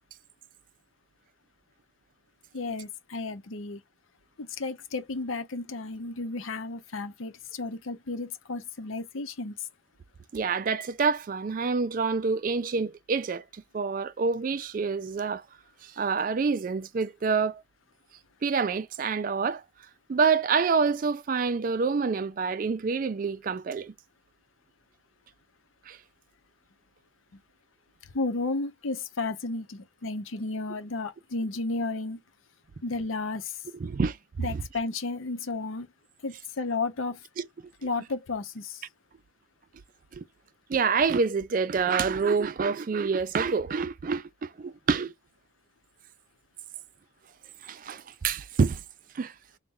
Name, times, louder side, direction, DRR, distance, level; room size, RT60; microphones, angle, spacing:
voice 1, 2.5-3.8 4.4-9.5 28.1-32.2 32.8-33.5 34.4-35.9 36.2-37.2 37.8-38.8, left 3 dB, 90° left, 0.8 m, -33 dB
voice 2, 10.3-15.4 15.8-17.6 18.4-19.6 20.1-23.9 25.9-26.0 33.7-34.6 37.4-37.5 40.1-40.3 40.7-45.1 47.6-48.8 49.1-49.3, right 5 dB, 45° right, 0.3 m, -27 dB
4.1 x 2.2 x 3.6 m
head